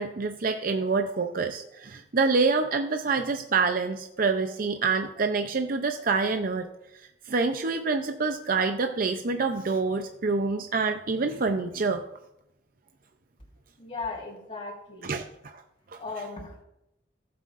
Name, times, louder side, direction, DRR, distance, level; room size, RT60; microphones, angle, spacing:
voice 1, 0.0-6.7 7.3-12.0 15.0-15.5 15.9-16.2, right 4 dB, 55° right, 6 dB, 0.6 m, -27 dB
voice 2, 13.8-15.1 16.0-16.6, left 3 dB, 35° left, -7 dB, 4.0 m, -37 dB
18.0 x 7.8 x 2.5 m, 0.84 s
head